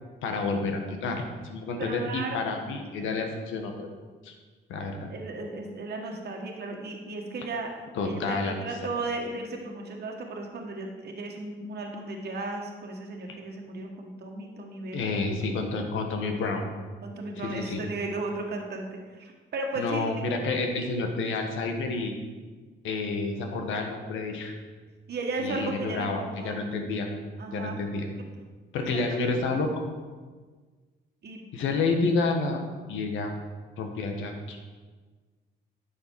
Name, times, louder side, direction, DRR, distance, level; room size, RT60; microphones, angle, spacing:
voice 1, 0.2-3.9 4.2-4.3 4.7-5.1 7.9-8.6 13.3-13.4 14.9-16.7 17.4-17.8 19.8-22.1 22.8-24.5 25.4-27.1 27.5-28.1 28.7-29.8 31.5-32.6 32.9-33.3 33.8-34.6, left 3 dB, 80° left, 4 dB, 1.4 m, -29 dB
voice 2, 1.8-2.8 5.1-7.7 8.0-15.2 17.0-20.1 25.1-26.6 27.4-27.8 28.8-29.2 31.2-31.4, right 2 dB, 55° right, 1 dB, 1.5 m, -35 dB
10.5 x 6.4 x 4.7 m, 1.4 s
cardioid pair, 90°, 20 cm